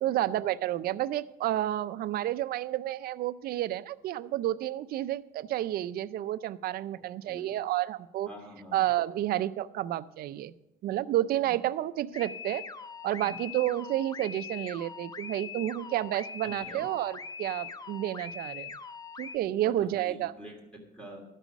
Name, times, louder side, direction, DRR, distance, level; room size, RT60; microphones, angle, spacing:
voice 1, 0.0-8.3 8.7-10.5 10.8-12.6 13.0-18.7 19.2-20.3, right 13 dB, 65° right, 14 dB, 0.5 m, -30 dB
voice 2, 8.3-8.8 11.4-11.5 13.2-13.4 16.6-16.9 19.6-21.2, equal, 5° left, 0 dB, 2.9 m, -47 dB
sound 1, 12.1-19.4, left 6 dB, 20° left, 0.5 m, -42 dB
12.5 x 5.6 x 7.1 m, 0.87 s
cardioid pair, 110°, 17 cm